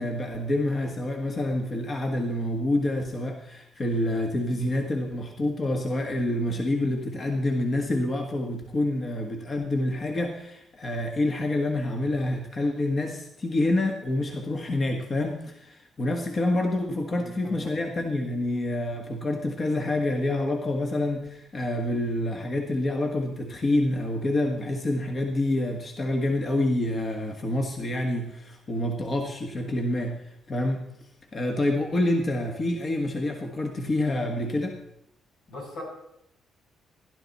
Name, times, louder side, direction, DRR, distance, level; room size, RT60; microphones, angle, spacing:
voice 1, 0.0-30.9 31.3-34.8, left 1 dB, 40° left, 3 dB, 1.6 m, -27 dB
voice 2, 17.1-17.6 35.5-35.8, left 1 dB, 85° left, -2 dB, 6.2 m, -40 dB
16.5 x 11.0 x 4.2 m, 0.78 s
cardioid pair, 90°, 0 cm